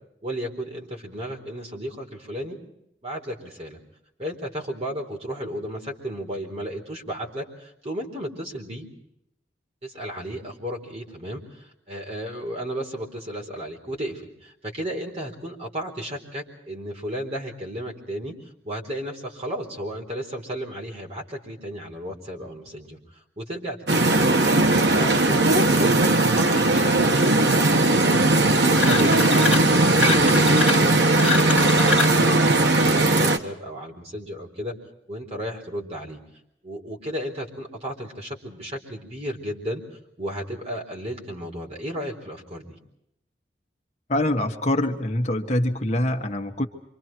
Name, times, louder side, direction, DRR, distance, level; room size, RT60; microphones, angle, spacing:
voice 1, 0.2-2.6 3.0-3.8 4.2-8.9 9.8-18.3 18.6-23.0 23.4-24.4 24.9-34.7 35.1-36.2 36.6-39.8 40.2-42.8, equal, 35° right, 1 dB, 4.3 m, -34 dB
sound 1, 23.9-33.4, right 2 dB, 75° right, 1.5 m, -18 dB
sound 2, 28.8-29.7 30.0-32.2, left 5 dB, 5° right, 3.8 m, -26 dB
voice 2, 44.1-46.7, left 1 dB, 40° left, 2 dB, 1.5 m, -24 dB
28.5 x 25.5 x 4.6 m, 0.78 s
head